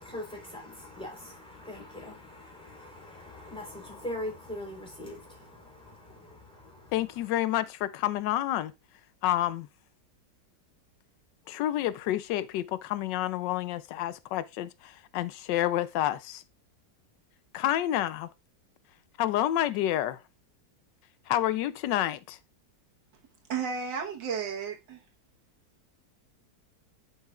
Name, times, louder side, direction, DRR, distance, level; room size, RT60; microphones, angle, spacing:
voice 1, 0.0-7.3, left 1 dB, 5° left, 3.6 m, -42 dB
voice 2, 6.9-8.7 9.2-9.7 11.5-16.4 17.5-18.3 19.2-20.2 21.3-22.4, left 13 dB, 85° left, 1.2 m, -29 dB
voice 3, 23.5-25.0, right 6 dB, 85° right, 1.9 m, -33 dB
10.5 x 5.5 x 2.4 m
omnidirectional pair, 1.9 m